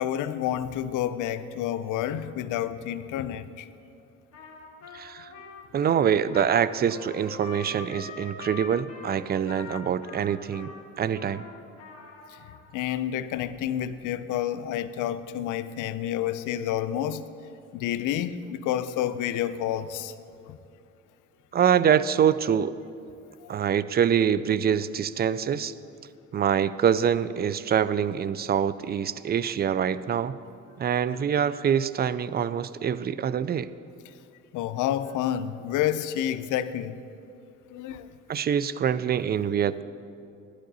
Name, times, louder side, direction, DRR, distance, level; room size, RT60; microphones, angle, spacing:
voice 1, 0.0-3.7 12.7-17.3 17.7-20.1 20.5-20.6 23.4-23.5 34.5-37.0 37.7-38.1, left 11 dB, 90° left, 13 dB, 0.5 m, -29 dB
Trumpet, 4.3-12.6, left 5 dB, 55° left, 2.3 m, -43 dB
voice 2, 4.9-5.3 5.7-10.7 11.0-11.4 21.5-22.7 23.5-25.7 26.3-30.4 30.8-33.7 38.3-39.8, right 8 dB, 35° right, 16 dB, 0.4 m, -25 dB
11.5 x 11.5 x 4.1 m, 2.7 s
cardioid pair, 90°, 30 cm